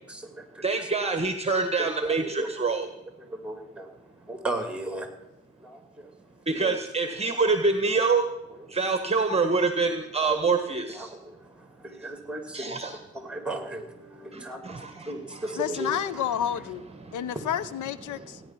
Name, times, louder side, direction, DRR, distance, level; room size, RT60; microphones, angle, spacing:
voice 1, 0.1-0.9 2.0-2.5 3.2-3.9 4.3-5.2 5.6-6.1 6.5-6.8 7.3-7.5 10.2-10.4 10.9-12.8 13.1-16.2 17.3-17.4, right 2 dB, 5° right, 6 dB, 2.7 m, -36 dB
voice 2, 0.6-2.9 6.5-8.2 8.7-11.1 12.5-13.0 14.3-15.5 15.7-15.9, right 4 dB, 20° right, 7 dB, 1.4 m, -26 dB
voice 3, 15.6-16.8 17.1-18.4, left 10 dB, 75° left, 16 dB, 0.9 m, -30 dB
16.5 x 10.0 x 6.0 m, 0.92 s
cardioid pair, 90°, 30 cm